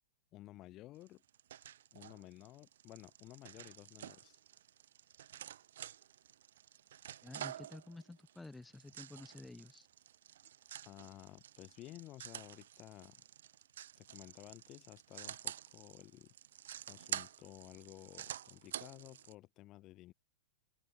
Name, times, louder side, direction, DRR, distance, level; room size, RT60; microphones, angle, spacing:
voice 1, 0.3-1.2 1.9-4.4 10.8-13.2 14.0-16.3 16.9-20.1, left 16 dB, 30° left, 4.1 m, -54 dB
sound 1, 1.0-19.3, right 11 dB, 75° right, 1.5 m, -49 dB
voice 2, 7.2-9.9, left 2 dB, 5° left, 0.6 m, -51 dB
supercardioid pair, 160°, 0 cm